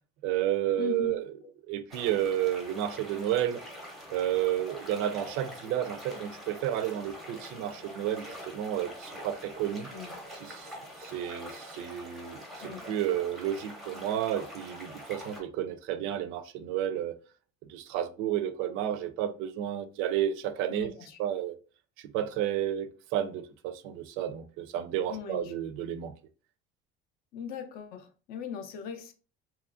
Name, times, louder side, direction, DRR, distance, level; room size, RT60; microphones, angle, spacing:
voice 1, 0.2-1.2 1.7-3.6 4.1-9.9 10.4-17.2 17.7-20.9 21.2-21.6 22.0-26.1, right 11 dB, 80° right, 0.4 m, -31 dB
voice 2, 0.8-1.5 9.9-10.2 12.6-12.9 20.7-21.2 25.1-25.5 27.3-29.1, left 8 dB, 50° left, 0.4 m, -40 dB
sound 1, 1.9-15.4, equal, ahead, 0.6 m, -45 dB
2.8 x 2.4 x 2.4 m
cardioid pair, 175°, 21 cm